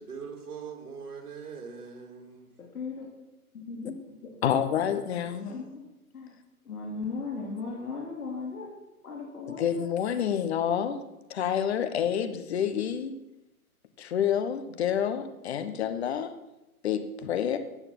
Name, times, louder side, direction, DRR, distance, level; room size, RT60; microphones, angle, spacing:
voice 1, 0.0-2.5, right 5 dB, 70° right, 0 dB, 3.1 m, -41 dB
voice 2, 2.6-3.1 3.5-4.3 5.4-5.8 6.1-6.3 6.7-8.7 9.0-9.9, left 4 dB, 75° left, -2 dB, 3.6 m, -37 dB
voice 3, 4.4-5.4 9.5-11.0 11.3-13.1 14.0-16.3 16.8-17.6, left 9 dB, 45° left, 10 dB, 1.3 m, -28 dB
14.5 x 8.8 x 6.2 m, 0.96 s
hypercardioid pair, 150°, 45 cm